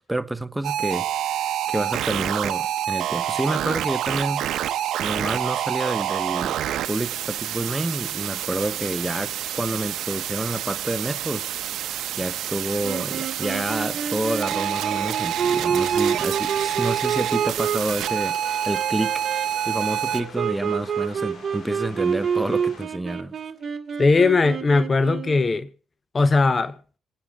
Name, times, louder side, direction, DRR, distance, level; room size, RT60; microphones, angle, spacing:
voice 1, 0.0-4.7 5.0-6.6 6.9-11.5 11.8-23.3, right 1 dB, 10° right, 0.8 m, -29 dB
sound 1, 0.6-20.2, right 11 dB, 80° right, 0.7 m, -27 dB
sound 2, 12.8-25.5, right 7 dB, 45° right, 1.6 m, -28 dB
sound 3, 15.5-22.9, left 4 dB, 60° left, 4.5 m, -46 dB
voice 2, 24.0-25.7 26.1-26.7, left 3 dB, 35° left, 0.6 m, -19 dB
27.0 x 9.8 x 3.6 m
cardioid pair, 90°, 0 cm